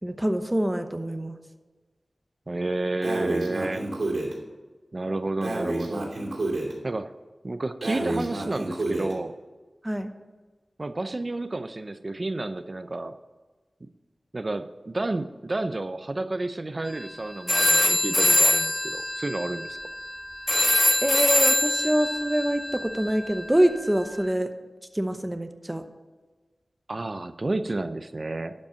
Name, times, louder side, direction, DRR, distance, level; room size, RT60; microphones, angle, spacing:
voice 1, 0.0-1.4 9.8-10.1 21.0-24.5 24.9-25.8, right 1 dB, 15° right, 7 dB, 0.9 m, -25 dB
voice 2, 2.5-3.9 4.9-6.1 6.8-7.1 7.4-9.3 10.8-13.1 14.3-19.8 26.9-28.5, right 2 dB, 45° right, 11 dB, 0.5 m, -30 dB
Breathing, 3.0-4.3 5.4-6.7 7.8-9.1, right 2 dB, 80° right, 2.7 m, -29 dB
sound 1, 16.9-17.1 17.5-24.1, left 1 dB, 25° left, 0.5 m, -24 dB
11.5 x 5.3 x 6.9 m, 1.3 s
wide cardioid pair, 65°, 0 cm